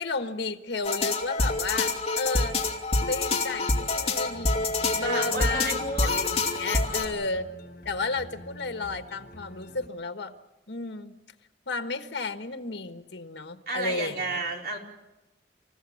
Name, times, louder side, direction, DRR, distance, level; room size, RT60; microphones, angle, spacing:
voice 1, 0.0-2.6 3.0-4.7 5.0-5.8 6.1-7.5 7.8-10.3 10.7-11.1 11.7-14.4, left 3 dB, 80° left, 7 dB, 1.4 m, -32 dB
sound 1, 0.8-7.1, left 3 dB, 35° left, 2.5 m, -27 dB
sound 2, 4.2-9.9, equal, 55° left, 3.8 m, -47 dB
voice 2, 5.0-6.1 6.6-7.1 13.7-14.8, right 2 dB, 60° right, 0 dB, 4.6 m, -32 dB
28.5 x 15.0 x 8.5 m, 1.0 s
head